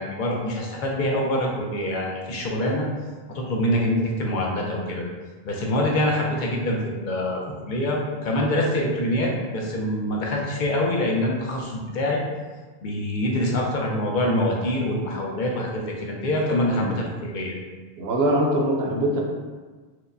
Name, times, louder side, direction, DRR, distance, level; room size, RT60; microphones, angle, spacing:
voice 1, 0.0-2.8 3.3-5.0 5.4-12.2 12.8-17.5, left 1 dB, 55° left, -2 dB, 0.7 m, -25 dB
voice 2, 16.5-17.0 18.0-19.2, equal, 75° right, -1 dB, 0.9 m, -23 dB
4.6 x 2.1 x 2.6 m, 1.4 s
omnidirectional pair, 1.1 m